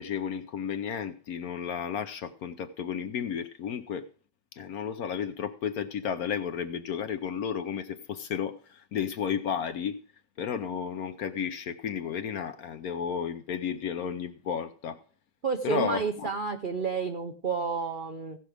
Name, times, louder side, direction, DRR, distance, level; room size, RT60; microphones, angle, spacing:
voice 1, 0.0-4.1 4.5-10.0 10.4-15.0 15.6-16.3, left 7 dB, 65° left, 1.0 m, -33 dB
voice 2, 15.4-18.4, right 5 dB, 60° right, 0.5 m, -30 dB
16.5 x 6.1 x 4.9 m
omnidirectional pair, 2.0 m